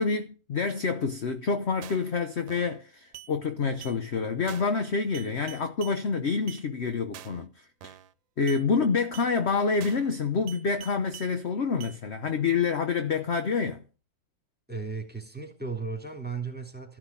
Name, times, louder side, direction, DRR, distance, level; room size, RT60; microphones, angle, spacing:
voice 1, 0.0-8.0 8.4-13.8, left 5 dB, 45° left, 1.0 m, -27 dB
sound 1, 1.8-2.1 2.5-2.8 3.1-3.3 3.8-4.0 4.5-4.8 5.1-6.0 6.5-6.6 7.1-7.4 7.8-8.1 8.5-8.6 9.1-9.3 9.8-10.1 10.5-11.3 11.8-12.0, right 12 dB, 85° right, 1.6 m, -45 dB
voice 2, 14.7-17.0, right 4 dB, 5° right, 3.3 m, -35 dB
14.0 x 6.2 x 8.3 m
omnidirectional pair, 2.0 m